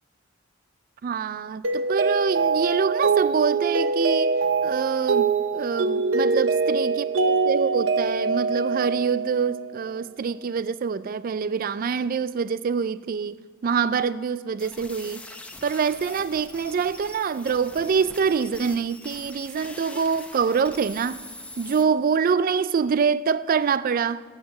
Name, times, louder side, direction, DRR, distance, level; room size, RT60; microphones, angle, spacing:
voice 1, 1.0-4.3 4.6-15.2 15.6-21.2 21.6-24.2, right 6 dB, 40° right, 0.3 m, -25 dB
Mallet percussion, 1.6-9.8, right 4 dB, 65° right, 0.8 m, -24 dB
sound 1, 14.6-21.8, left 2 dB, 5° left, 0.7 m, -43 dB
12.0 x 7.3 x 7.4 m
head